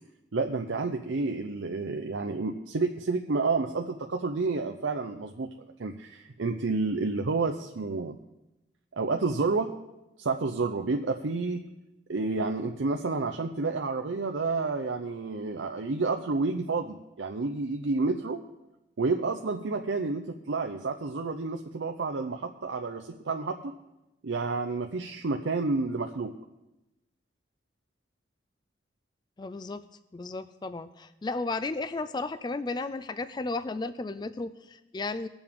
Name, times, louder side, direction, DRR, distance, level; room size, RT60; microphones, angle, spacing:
voice 1, 0.3-5.5 5.8-8.2 9.0-9.7 10.2-11.7 12.1-18.4 19.0-23.7 24.2-26.3, right 3 dB, 85° right, 5 dB, 0.6 m, -30 dB
voice 2, 29.4-29.8 30.1-35.3, left 3 dB, 25° left, 13 dB, 0.3 m, -34 dB
19.5 x 7.0 x 3.6 m, 0.97 s
head